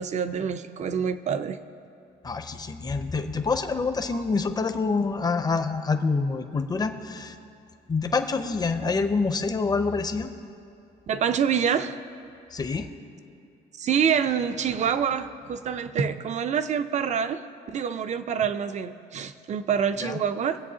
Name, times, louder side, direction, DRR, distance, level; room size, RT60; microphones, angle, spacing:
voice 1, 0.0-1.6 8.8-8.9 11.1-12.0 13.7-17.4 17.7-20.6, right 7 dB, 45° right, 11 dB, 0.6 m, -26 dB
voice 2, 2.2-7.3 7.9-10.3 12.5-12.9 20.0-20.2, left 4 dB, 25° left, 8 dB, 0.7 m, -26 dB
22.5 x 8.0 x 2.8 m, 2.6 s
cardioid pair, 110°, 17 cm